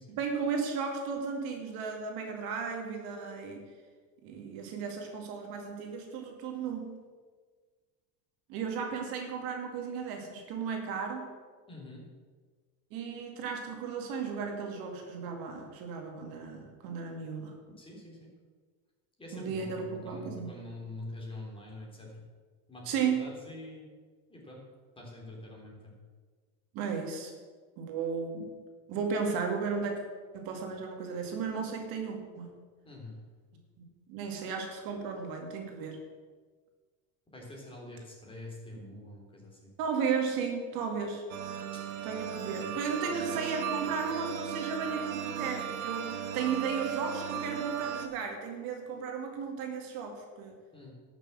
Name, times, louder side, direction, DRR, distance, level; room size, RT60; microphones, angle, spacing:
voice 1, 0.1-3.6 4.2-7.0 8.5-11.3 12.9-17.5 19.3-20.6 22.8-23.2 26.7-27.3 27.8-28.5 28.9-30.0 30.3-32.6 34.1-36.0 38.9-39.0 39.8-41.2 42.0-50.6, right 5 dB, 60° right, 3 dB, 2.2 m, -35 dB
voice 2, 11.7-12.0 17.8-18.3 19.2-22.1 22.7-23.9 24.3-24.6 25.0-25.9 32.9-33.2 37.3-39.7 50.7-50.9, left 2 dB, 15° left, -2 dB, 3.5 m, -45 dB
sound 1, 41.3-48.1, right 9 dB, 90° right, 1.5 m, -36 dB
12.5 x 6.7 x 7.5 m, 1.5 s
supercardioid pair, 130°, 39 cm